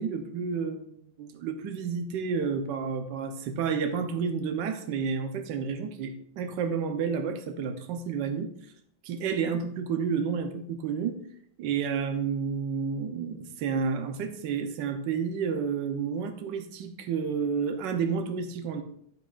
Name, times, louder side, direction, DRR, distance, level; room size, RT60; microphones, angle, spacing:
voice 1, 0.0-8.5 9.0-11.2 11.6-18.8, right 6 dB, 75° right, 6 dB, 1.4 m, -30 dB
9.3 x 8.3 x 2.4 m, 0.66 s
omnidirectional pair, 2.0 m